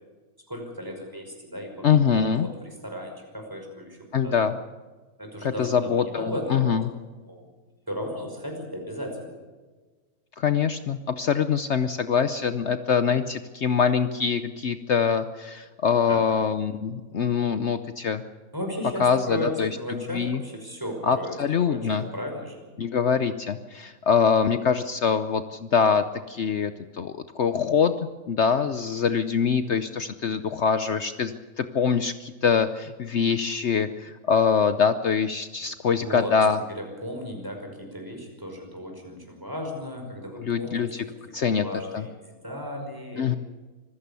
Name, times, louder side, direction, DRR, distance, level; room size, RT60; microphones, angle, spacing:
voice 1, 0.5-1.9 2.4-4.3 5.2-6.8 7.2-7.4 7.9-9.3 16.1-16.2 18.5-21.3 21.6-22.6 36.0-36.3 36.8-43.3, equal, 15° right, 2 dB, 5.5 m, -35 dB
voice 2, 1.8-2.5 4.1-4.6 5.4-6.9 10.4-18.2 19.0-20.4 21.0-22.0 22.8-27.9 28.3-36.6 40.4-41.0 41.3-41.7 41.9-42.1 43.1-43.4, left 6 dB, 55° left, 11 dB, 1.0 m, -24 dB
25.5 x 15.5 x 6.9 m, 1.3 s
omnidirectional pair, 1.5 m